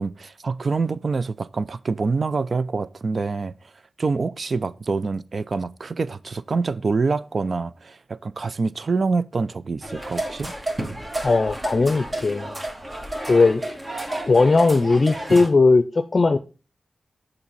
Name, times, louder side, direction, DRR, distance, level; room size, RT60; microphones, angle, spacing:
voice 1, 0.0-3.5 4.0-10.5, right 4 dB, 60° right, 0.4 m, -26 dB
sound 1, 9.8-15.5, right 1 dB, 30° right, 1.8 m, -31 dB
voice 2, 11.2-12.5 13.3-13.6 14.3-16.4, left 3 dB, 50° left, 0.5 m, -18 dB
7.0 x 5.3 x 5.5 m
cardioid pair, 40°, 0 cm